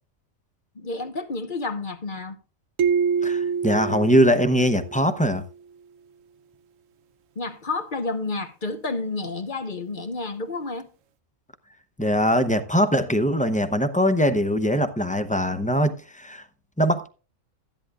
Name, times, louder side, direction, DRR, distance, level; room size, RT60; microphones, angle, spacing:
voice 1, 0.7-2.4 7.3-10.9, left 3 dB, 40° left, 1.3 m, -30 dB
sound 1, 2.8-5.3, right 6 dB, 75° right, 1.1 m, -26 dB
voice 2, 3.2-5.4 12.0-16.4 16.8-17.1, equal, 10° left, 0.5 m, -21 dB
14.5 x 10.5 x 2.4 m
omnidirectional pair, 1.4 m